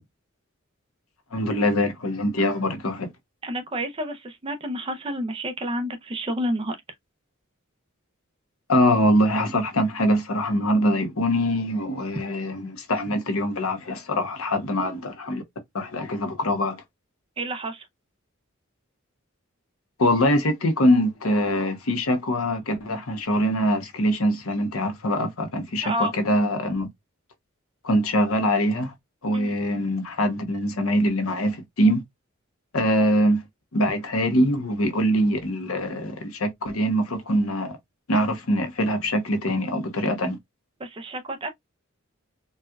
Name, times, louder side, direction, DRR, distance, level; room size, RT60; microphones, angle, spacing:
voice 1, 1.3-3.1 8.7-15.4 15.7-16.8 20.0-26.9 27.8-28.9 29.2-32.0 32.7-33.4 33.7-37.8 38.1-40.4, equal, 90° left, 0.9 m, -23 dB
voice 2, 3.4-6.8 17.4-17.8 25.8-26.1 29.3-29.6 40.8-41.5, equal, 25° right, 0.6 m, -29 dB
4.2 x 2.3 x 2.3 m
head